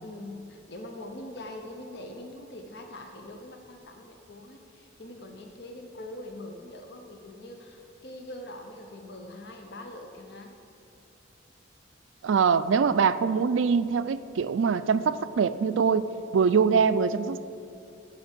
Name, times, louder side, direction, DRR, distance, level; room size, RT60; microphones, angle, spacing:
voice 1, 0.0-10.5, left 1 dB, 60° left, 3 dB, 0.8 m, -43 dB
voice 2, 12.2-16.1 16.3-17.4, right 6 dB, 80° right, 13 dB, 0.4 m, -23 dB
13.0 x 4.5 x 8.3 m, 2.6 s
head